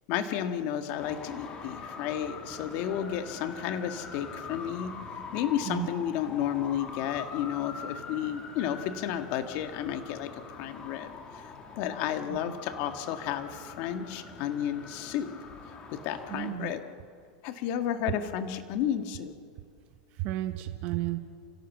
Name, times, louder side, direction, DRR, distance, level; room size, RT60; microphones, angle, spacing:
voice 1, 0.1-4.9 5.3-11.1 11.8-15.3 15.9-16.8 17.4-19.3, left 10 dB, 50° left, 7 dB, 1.7 m, -32 dB
Traffic noise roadway noise, 1.0-16.5, left 4 dB, 25° left, 2.6 m, -43 dB
voice 2, 16.3-16.7 20.2-21.2, right 16 dB, 45° right, 8 dB, 1.0 m, -32 dB
28.5 x 16.5 x 7.4 m, 2.2 s
supercardioid pair, 150°, 4 cm